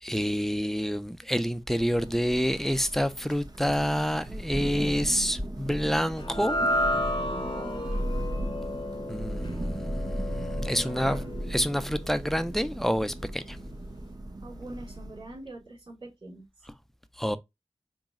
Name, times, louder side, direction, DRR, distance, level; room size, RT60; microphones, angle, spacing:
voice 1, 0.0-6.6 9.1-13.6 17.2-17.4, equal, 5° left, 0.4 m, -28 dB
Thunder, 1.8-15.4, right 1 dB, 40° right, 0.6 m, -36 dB
sound 1, 6.2-12.6, left 1 dB, 50° left, 0.8 m, -32 dB
voice 2, 7.4-7.9 10.7-11.2 14.4-16.5, right 1 dB, 60° right, 2.2 m, -43 dB
4.0 x 2.1 x 3.5 m
wide cardioid pair, 60°, 11 cm